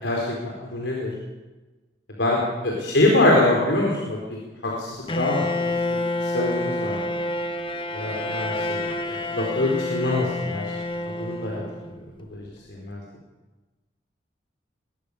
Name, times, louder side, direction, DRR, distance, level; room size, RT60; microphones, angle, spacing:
voice 1, 0.0-1.1 2.2-2.4 2.6-4.2 4.6-7.2 7.9-10.6 11.2-11.6 12.3-12.4 12.7-13.0, left 1 dB, 75° left, -2 dB, 4.7 m, -24 dB
Bowed string instrument, 5.1-12.0, left 2 dB, 25° left, 1.3 m, -28 dB
22.0 x 18.0 x 6.9 m, 1.2 s
head